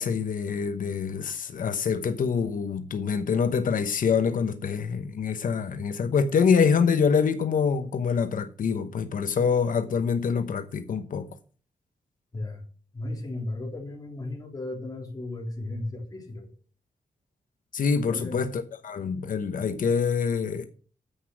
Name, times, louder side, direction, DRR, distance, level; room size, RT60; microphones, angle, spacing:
voice 1, 0.0-11.3 17.7-20.7, left 6 dB, 85° left, 1.1 m, -25 dB
voice 2, 12.9-16.5 18.1-18.4, left 2 dB, 25° left, 3.6 m, -35 dB
10.0 x 8.0 x 6.2 m
wide cardioid pair, 155°, 14 cm